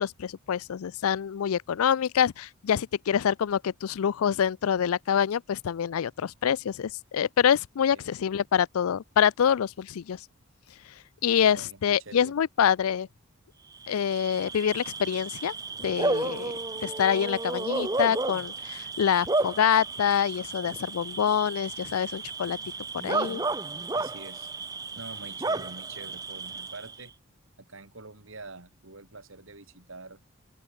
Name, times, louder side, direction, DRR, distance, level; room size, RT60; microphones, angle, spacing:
voice 1, 0.0-10.2 11.2-13.1 13.9-15.5 15.8-16.5 16.8-22.6 23.0-23.4, left 8 dB, 85° left, 0.4 m, -26 dB
voice 2, 11.5-12.4 23.9-24.5 24.9-27.1 27.6-30.2, right 3 dB, 70° right, 2.6 m, -45 dB
Bark / Cricket, 13.8-27.1, right 3 dB, 15° right, 0.7 m, -33 dB
open air
head